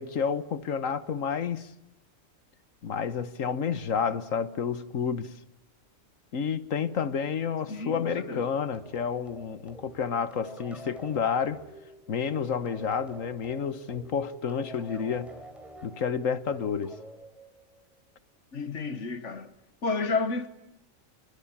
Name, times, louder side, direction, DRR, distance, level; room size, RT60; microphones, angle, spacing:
voice 1, 0.0-1.7 2.8-5.3 6.3-11.6 12.1-15.3 15.8-17.0, left 6 dB, 85° left, 1.6 m, -30 dB
voice 2, 7.7-8.5 18.5-19.5 19.8-20.5, left 4 dB, 65° left, 1.8 m, -31 dB
sound 1, 8.7-18.0, equal, ahead, 3.9 m, -48 dB
27.0 x 23.0 x 8.7 m
omnidirectional pair, 1.3 m